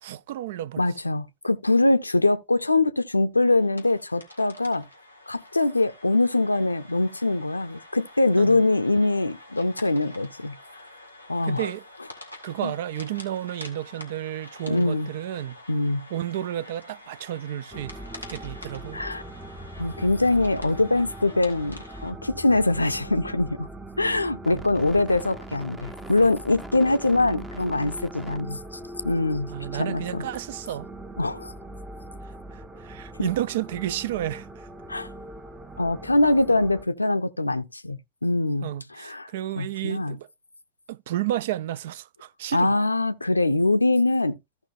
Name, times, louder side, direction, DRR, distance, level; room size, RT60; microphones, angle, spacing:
voice 1, 0.0-0.8 8.4-8.6 11.4-11.8 12.4-15.6 16.1-18.0 18.3-19.0 24.5-24.6 29.5-30.9 32.5-34.7 38.6-40.3 40.9-42.7, right 13 dB, 55° right, 0.4 m, -32 dB
voice 2, 0.8-4.9 5.3-10.6 11.3-11.7 12.6-12.7 14.7-15.1 15.7-16.1 18.9-19.2 19.8-23.7 24.0-30.2 31.2-31.5 34.9-35.1 35.8-39.3 39.6-40.2 42.5-44.4, left 2 dB, 80° left, 0.5 m, -23 dB
sound 1, 3.4-22.1, left 1 dB, 90° right, 2.0 m, -47 dB
sound 2, 17.7-36.8, right 1 dB, 10° right, 0.8 m, -40 dB
15.0 x 5.6 x 2.6 m
figure-of-eight pair, 90°, 0 cm